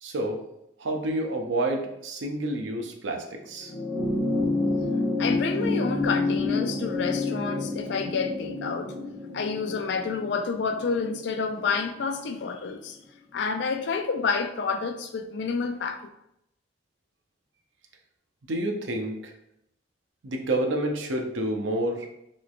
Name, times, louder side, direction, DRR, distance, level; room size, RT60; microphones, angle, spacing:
voice 1, 0.0-0.4 0.8-3.7 18.5-19.3 20.2-22.1, right 1 dB, 80° right, 3 dB, 0.6 m, -29 dB
sound 1, 3.6-12.3 13.5-13.6, left 2 dB, 5° right, 0.5 m, -29 dB
voice 2, 5.2-9.0 9.3-13.0 13.3-16.0, left 5 dB, 65° left, 7 dB, 0.4 m, -29 dB
3.1 x 3.1 x 2.4 m, 0.80 s
head